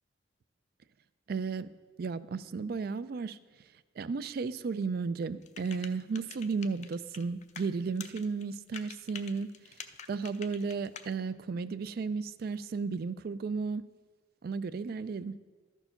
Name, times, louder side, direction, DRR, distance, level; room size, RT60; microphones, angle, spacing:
voice 1, 1.3-1.7 2.0-3.4 4.0-9.5 10.1-13.8 14.4-15.3, right 4 dB, 50° right, 15 dB, 0.3 m, -34 dB
sound 1, 5.4-7.7 8.0-11.1, left 7 dB, 35° left, 0.4 m, -46 dB
13.0 x 4.6 x 5.7 m, 1.4 s
head